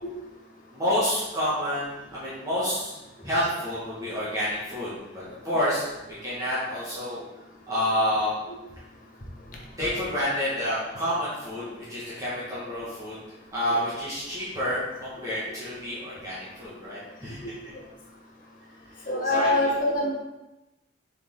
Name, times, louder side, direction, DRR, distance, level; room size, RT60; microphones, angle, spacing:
voice 1, 0.7-2.9 3.2-7.2 7.7-8.3 9.8-13.2 13.5-17.4 19.2-19.7, equal, 15° right, -10 dB, 1.8 m, -29 dB
voice 2, 19.1-20.1, left 2 dB, 40° left, -2 dB, 1.3 m, -24 dB
7.0 x 4.5 x 3.9 m, 1.0 s
head